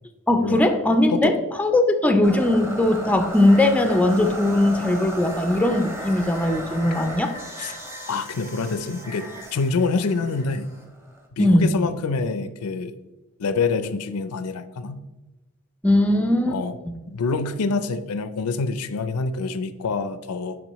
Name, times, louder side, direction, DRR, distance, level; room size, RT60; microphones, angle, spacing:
voice 1, 0.3-7.3 11.4-11.9 15.8-16.6, left 1 dB, 5° left, 7 dB, 0.4 m, -19 dB
sound 1, 2.2-11.3, right 1 dB, 10° right, 0.8 m, -35 dB
voice 2, 8.1-9.3 9.5-10.7 11.4-12.9 13.4-15.0 16.5-16.8 17.1-20.6, left 4 dB, 80° left, 11 dB, 0.5 m, -26 dB
10.0 x 3.6 x 3.0 m, 1.1 s
head